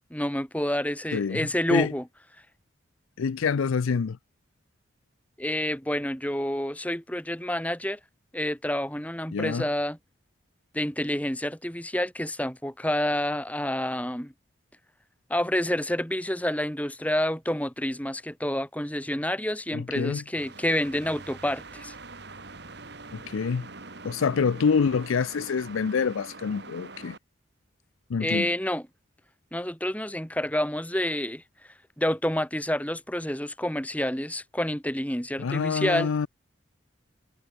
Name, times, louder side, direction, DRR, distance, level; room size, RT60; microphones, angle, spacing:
voice 1, 0.1-2.0 5.4-8.0 8.3-10.0 10.7-14.3 15.3-21.9 28.2-28.8 29.5-31.4 32.0-36.1, left 1 dB, 5° left, 2.7 m, -28 dB
voice 2, 1.1-1.9 3.2-4.2 9.3-9.7 19.7-20.2 23.1-23.7 24.0-27.2 28.1-28.5 35.4-36.3, left 5 dB, 80° left, 0.5 m, -26 dB
sound 1, 20.4-27.2, right 3 dB, 55° right, 2.5 m, -44 dB
head